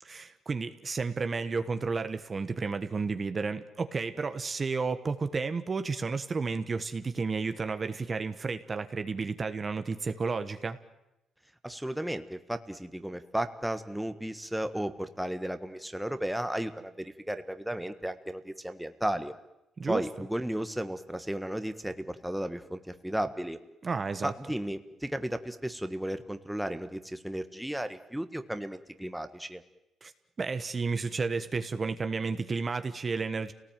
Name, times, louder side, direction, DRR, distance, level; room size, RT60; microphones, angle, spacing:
voice 1, 0.0-10.8 19.8-20.0 23.8-24.3 30.0-30.1 30.4-33.5, right 4 dB, 35° right, 9 dB, 1.3 m, -32 dB
voice 2, 11.6-19.3 19.9-23.6 24.2-29.6, right 1 dB, 5° right, 9 dB, 1.5 m, -34 dB
28.0 x 18.5 x 9.2 m, 0.91 s
cardioid pair, 90°, 0 cm